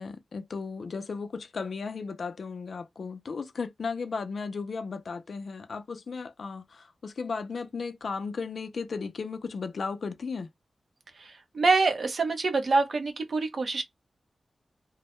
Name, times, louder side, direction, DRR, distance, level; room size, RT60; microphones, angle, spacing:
voice 1, 0.0-10.5, left 4 dB, 60° left, 0.4 m, -35 dB
voice 2, 11.2-13.8, right 3 dB, 50° right, 0.6 m, -26 dB
2.1 x 2.1 x 2.9 m
wide cardioid pair, 145°, 0 cm